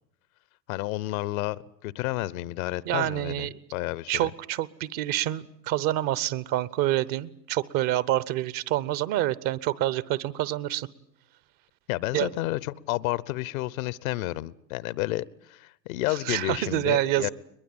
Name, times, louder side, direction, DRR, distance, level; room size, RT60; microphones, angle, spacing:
voice 1, 0.7-4.3 11.9-17.3, left 17 dB, 55° left, 0.9 m, -31 dB
voice 2, 2.9-3.6 4.1-10.9 12.1-12.3 16.3-17.3, right 14 dB, 40° right, 0.9 m, -27 dB
22.0 x 21.5 x 8.8 m
hypercardioid pair, 90°, 49 cm